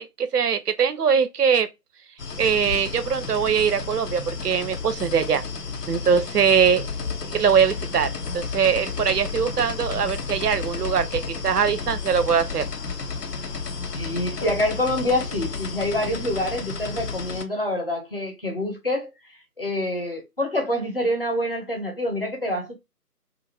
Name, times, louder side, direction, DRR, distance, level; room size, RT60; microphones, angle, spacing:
voice 1, 0.0-1.7 2.4-5.4 5.9-6.9 7.2-8.1 8.3-12.6, right 7 dB, 75° right, 0.6 m, -22 dB
sound 1, 2.2-17.4, left 4 dB, 80° left, 0.7 m, -32 dB
voice 2, 13.9-19.1 19.6-22.7, left 1 dB, 35° left, 0.8 m, -26 dB
2.5 x 2.4 x 3.0 m
figure-of-eight pair, 160°, 47 cm